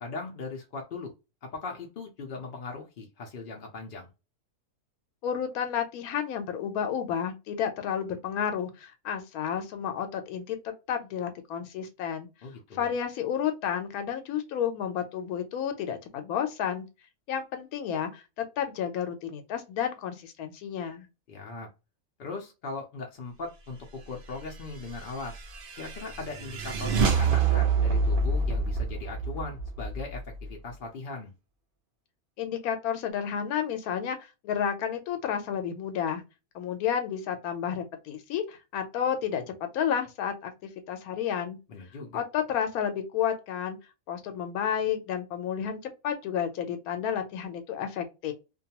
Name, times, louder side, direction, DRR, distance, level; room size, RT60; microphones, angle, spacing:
voice 1, 0.0-1.1 1.4-4.1 12.4-12.9 21.3-21.7 22.2-25.3 25.8-31.3 41.7-42.2, left 3 dB, 60° left, 0.5 m, -39 dB
voice 2, 5.2-12.3 12.7-16.9 17.3-21.1 32.4-36.2 36.5-41.6 42.1-43.8 44.1-48.3, left 8 dB, 85° left, 1.1 m, -31 dB
sound 1, 24.9-30.5, right 4 dB, 75° right, 0.5 m, -27 dB
2.5 x 2.3 x 2.8 m
omnidirectional pair, 1.5 m